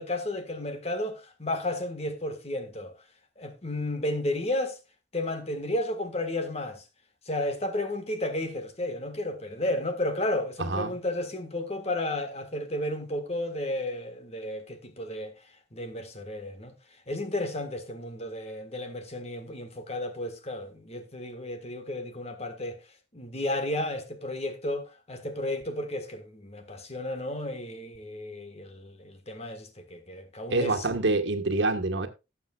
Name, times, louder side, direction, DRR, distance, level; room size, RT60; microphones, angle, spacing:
voice 1, 0.0-2.9 3.4-4.8 5.1-6.8 7.2-15.3 15.7-16.7 17.1-22.8 23.1-30.9, left 1 dB, 35° left, 1.6 m, -33 dB
voice 2, 10.6-10.9 30.5-32.1, right 2 dB, 75° right, 1.5 m, -26 dB
17.5 x 7.3 x 2.4 m
head